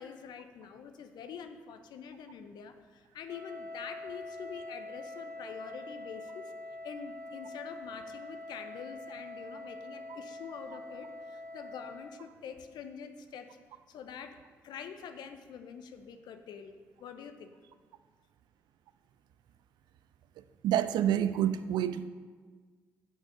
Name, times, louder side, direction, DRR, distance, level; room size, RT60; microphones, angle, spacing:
voice 1, 0.0-6.5 6.8-13.6 13.9-14.4 14.6-17.5, left 7 dB, 65° left, 8 dB, 0.7 m, -45 dB
Wind instrument woodwind instrument, 3.3-12.2, left 1 dB, 40° right, 2.4 m, -45 dB
voice 2, 20.6-22.1, right 10 dB, 65° right, 12 dB, 0.4 m, -28 dB
8.3 x 6.1 x 6.6 m, 1.5 s
hypercardioid pair, 40°, 8 cm